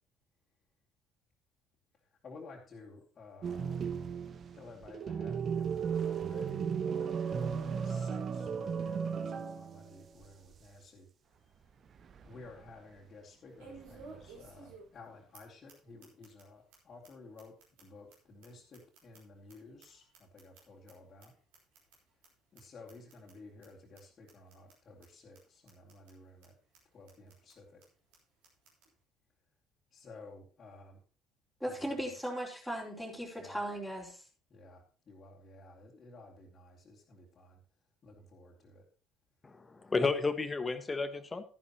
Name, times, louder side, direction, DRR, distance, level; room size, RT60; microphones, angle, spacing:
voice 1, 2.2-3.9 4.5-11.1 12.2-21.3 22.5-26.5 26.9-27.8 29.9-31.0 31.6-32.1 33.4-33.6 34.5-37.6 38.0-38.8, left 3 dB, 35° left, -5 dB, 2.7 m, -54 dB
sound 1, 3.4-10.0 10.2-10.3 12.0-12.7 13.8-14.5, right 7 dB, 40° right, 0.9 m, -35 dB
sound 2, 11.2-11.3 11.8-11.9 13.6-15.1 15.3-15.4 15.7-15.8 16.0-16.4 16.7-16.8 17.0-17.1 17.4-19.5 19.8-20.9 21.2-21.3 21.5-22.0 22.2-22.3 22.6-22.7 22.9-23.3 23.6-23.7 24.0-24.1 24.3-24.7 25.0-25.1 25.3-25.4 25.7-26.1 26.4-26.5 26.7-26.8 27.1-27.5 27.8-27.9 28.1-28.2 28.4-28.9, right 4 dB, 65° right, 5.1 m, -54 dB
voice 2, 31.6-34.3, equal, 5° right, -4 dB, 4.4 m, -37 dB
voice 3, 39.4-41.4, left 3 dB, 20° left, 10 dB, 1.5 m, -32 dB
13.5 x 11.0 x 3.0 m, 0.38 s
figure-of-eight pair, 55°, 0 cm